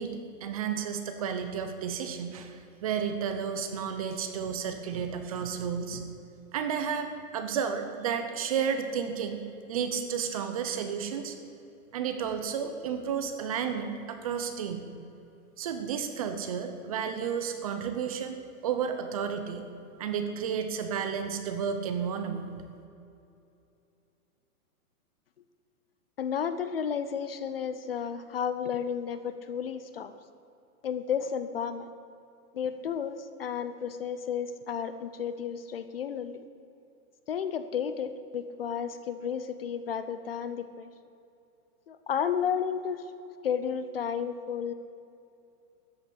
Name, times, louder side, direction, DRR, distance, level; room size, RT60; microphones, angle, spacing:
voice 1, 0.0-6.1 6.5-9.4 9.7-11.3 11.9-14.8 15.6-19.6 20.0-22.5, right 7 dB, 25° right, 7 dB, 0.7 m, -32 dB
voice 2, 26.2-30.1 30.8-31.9 32.5-36.4 37.3-40.9 41.9-43.0 43.4-44.7, left 7 dB, 40° left, 11 dB, 0.6 m, -32 dB
13.5 x 8.4 x 8.6 m, 2.7 s
hypercardioid pair, 165°, 45 cm